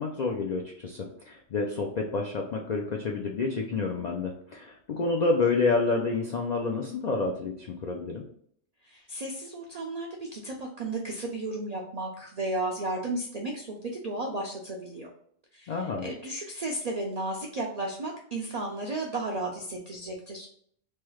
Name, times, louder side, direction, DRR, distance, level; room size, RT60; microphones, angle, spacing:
voice 1, 0.0-8.2 15.7-16.1, left 3 dB, 75° left, 1 dB, 0.3 m, -29 dB
voice 2, 8.8-15.1 15.5-20.5, right 2 dB, 65° right, -1 dB, 0.4 m, -34 dB
3.1 x 2.3 x 3.0 m, 0.63 s
omnidirectional pair, 1.3 m